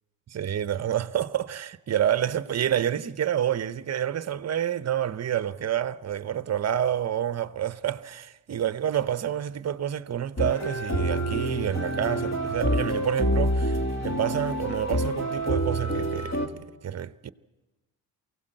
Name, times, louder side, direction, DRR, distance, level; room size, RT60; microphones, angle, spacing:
voice 1, 0.3-16.4 16.8-17.3, right 10 dB, 35° right, 0.8 m, -28 dB
sound 1, 10.4-16.5, equal, 35° left, 2.5 m, -27 dB
22.5 x 16.5 x 7.8 m
cardioid pair, 75°, 45 cm